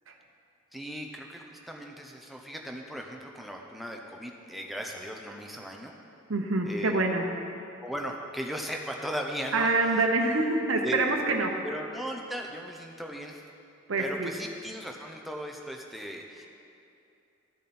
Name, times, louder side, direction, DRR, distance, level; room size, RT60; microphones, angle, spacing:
voice 1, 0.7-5.9 6.6-7.0 7.8-9.9 10.8-11.1 11.6-13.4 14.0-16.5, equal, ahead, 1 dB, 0.7 m, -37 dB
voice 2, 6.3-7.3 9.5-11.6 13.9-14.3, right 2 dB, 75° right, 2 dB, 0.9 m, -26 dB
13.5 x 7.2 x 4.3 m, 2.7 s
head